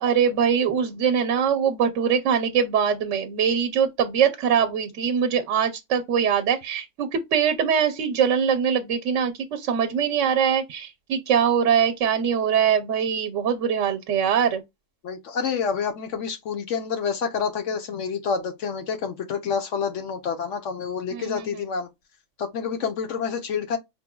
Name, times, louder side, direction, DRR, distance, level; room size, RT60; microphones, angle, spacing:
voice 1, 0.0-14.6 21.1-21.6, right 7 dB, 85° right, 1.0 m, -22 dB
voice 2, 15.0-21.9 22.4-23.8, left 6 dB, 80° left, 1.2 m, -28 dB
5.2 x 3.1 x 2.2 m
omnidirectional pair, 1.3 m